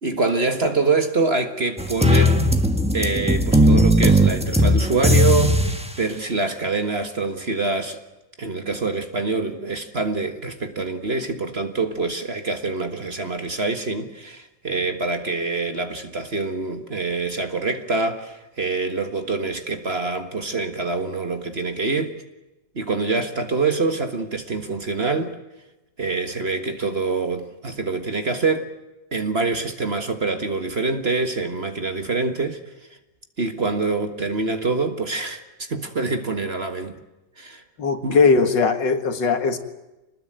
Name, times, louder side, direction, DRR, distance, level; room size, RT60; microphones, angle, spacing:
voice 1, 0.0-2.4 2.9-8.0 8.4-22.2 22.8-25.4 26.0-28.7 29.1-32.6 33.4-37.0 37.4-37.6 38.0-38.2, right 3 dB, 35° right, 1.8 m, -25 dB
sound 1, 1.8-5.9, equal, 5° right, 1.3 m, -17 dB
voice 2, 37.8-39.6, left 4 dB, 70° left, 2.5 m, -19 dB
26.5 x 20.0 x 9.1 m
omnidirectional pair, 2.0 m